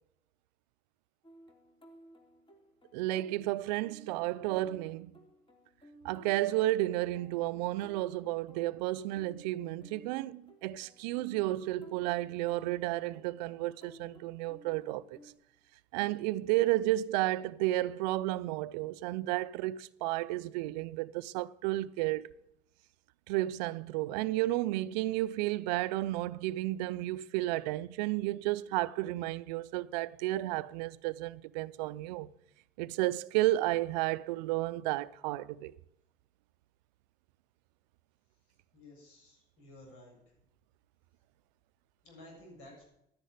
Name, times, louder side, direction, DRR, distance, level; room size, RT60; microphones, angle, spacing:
sound 1, 1.2-15.3, right 1 dB, 25° left, 3.3 m, -58 dB
voice 1, 2.9-5.1 6.0-15.2 15.9-22.3 23.3-32.3 32.8-35.8, right 16 dB, 90° right, 0.5 m, -32 dB
voice 2, 38.7-40.2 42.0-42.8, left 1 dB, 80° left, 7.3 m, -53 dB
11.0 x 10.0 x 9.4 m
hypercardioid pair, 55°, 21 cm